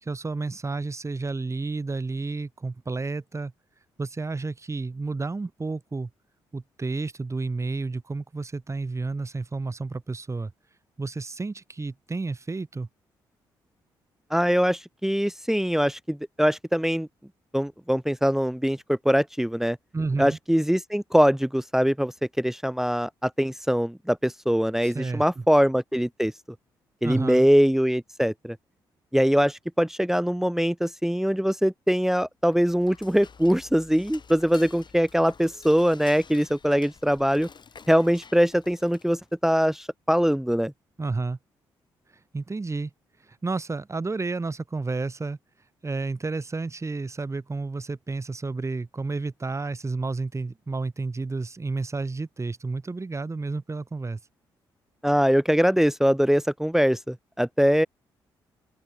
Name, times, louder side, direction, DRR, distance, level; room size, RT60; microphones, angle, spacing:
voice 1, 0.0-3.5 4.0-6.1 6.5-10.5 11.0-12.9 19.9-20.4 24.8-25.4 27.0-27.5 41.0-41.4 42.1-42.9 43.2-45.4 45.8-54.2, right 3 dB, 25° right, 1.7 m, -31 dB
voice 2, 14.3-17.1 17.5-19.8 20.2-26.3 27.0-28.6 29.1-37.5 37.9-40.7 55.0-57.9, equal, 5° right, 0.9 m, -22 dB
Dishes pots and pans / Cutlery silverware, 32.5-39.3, left 5 dB, 45° left, 3.8 m, -49 dB
open air
hypercardioid pair, 45°, 11 cm